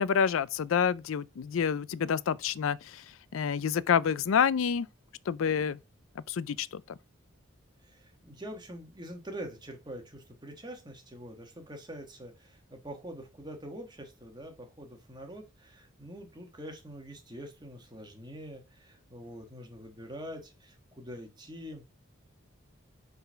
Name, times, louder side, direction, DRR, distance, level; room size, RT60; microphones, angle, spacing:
voice 1, 0.0-3.0 3.3-4.9 5.3-5.8 6.2-6.8, left 7 dB, 75° left, 0.4 m, -28 dB
voice 2, 7.8-21.9, equal, 20° right, 1.4 m, -45 dB
5.7 x 3.9 x 5.6 m
head